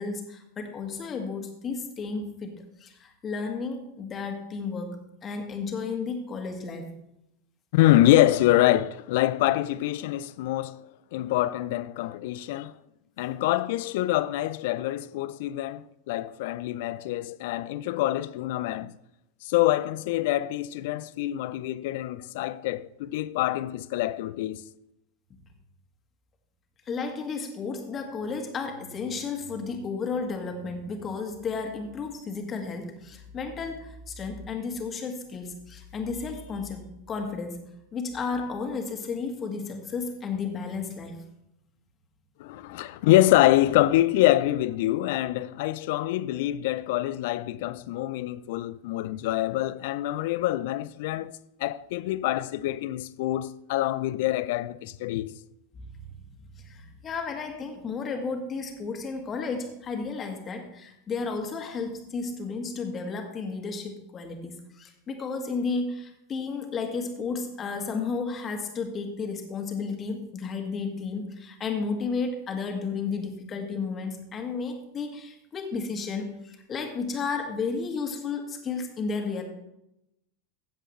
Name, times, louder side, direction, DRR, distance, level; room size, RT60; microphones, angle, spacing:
voice 1, 0.0-6.9 26.9-36.8 37.1-37.7 37.9-41.2 55.8-55.9 56.5-79.4, left 4 dB, 30° left, 2.0 m, -33 dB
voice 2, 7.7-10.8 11.1-12.7 13.2-18.9 19.4-24.6 42.4-55.3, left 15 dB, 60° left, 0.4 m, -25 dB
15.5 x 7.7 x 3.2 m
hypercardioid pair, 90°, 0 cm